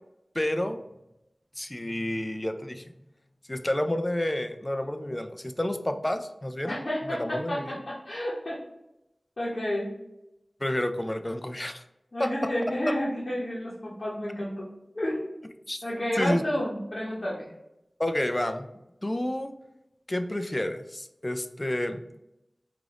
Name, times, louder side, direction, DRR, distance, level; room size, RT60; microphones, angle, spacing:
voice 1, 0.3-0.8 1.6-2.8 3.5-6.8 7.1-7.8 10.6-11.8 12.2-12.3 12.9-13.0 15.7-15.8 16.2-16.4 18.0-18.7 19.0-19.5 20.1-22.0, left 1 dB, 25° left, 8 dB, 0.3 m, -29 dB
voice 2, 6.6-8.6 9.4-9.9 12.1-14.7 14.9-15.3 15.8-17.5, left 1 dB, 55° left, -7 dB, 0.9 m, -30 dB
3.6 x 2.5 x 3.3 m, 0.89 s
wide cardioid pair, 60°, 0 cm